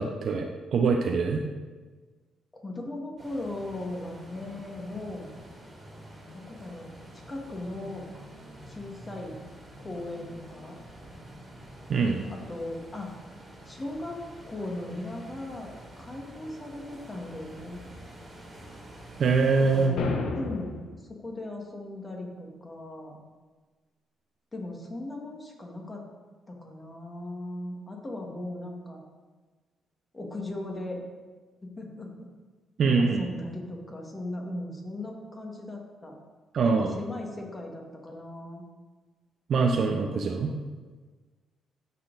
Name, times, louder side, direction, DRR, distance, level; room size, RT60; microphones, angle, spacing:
voice 1, 0.0-1.4 11.9-12.2 19.2-20.0 32.8-33.2 36.5-37.0 39.5-40.5, right 4 dB, 60° right, 3 dB, 0.6 m, -24 dB
voice 2, 2.6-5.3 6.3-6.9 7.3-8.0 8.7-9.4 9.8-10.8 12.3-13.3 13.6-14.2 14.5-17.8 19.6-20.8 21.0-23.2 24.5-26.1 26.5-29.0 30.1-31.0 31.6-32.3 33.0-36.1 36.8-38.6 40.1-40.3, left 2 dB, 25° left, 0 dB, 1.7 m, -38 dB
sound 1, 3.2-19.9, right 1 dB, 25° right, 2.2 m, -48 dB
sound 2, 20.0-21.0, left 5 dB, 75° left, 0.8 m, -32 dB
12.0 x 4.2 x 3.9 m, 1.3 s
cardioid pair, 90°, 0 cm